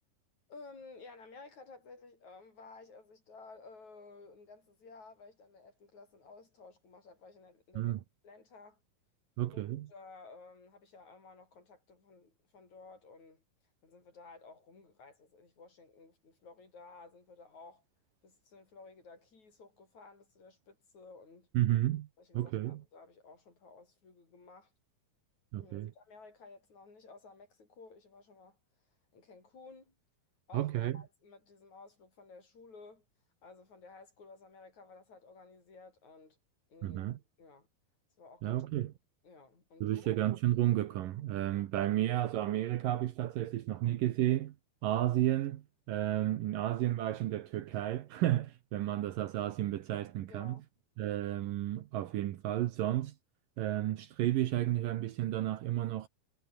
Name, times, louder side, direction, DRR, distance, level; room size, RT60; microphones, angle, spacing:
voice 1, 0.5-8.8 9.5-13.4 13.8-17.8 18.2-21.5 22.2-24.7 25.5-28.6 29.1-30.0 30.5-33.1 33.4-36.4 36.7-37.7 38.2-38.6 39.2-40.1 50.3-50.7, left 4 dB, 45° left, 7.2 m, -55 dB
voice 2, 9.4-9.9 21.5-22.1 22.3-22.8 25.5-25.9 30.5-31.0 36.8-37.2 38.4-38.9 39.8-44.6 44.8-50.6 51.0-53.1 53.6-56.1, right 13 dB, 70° right, 2.5 m, -32 dB
omnidirectional pair, 4.5 m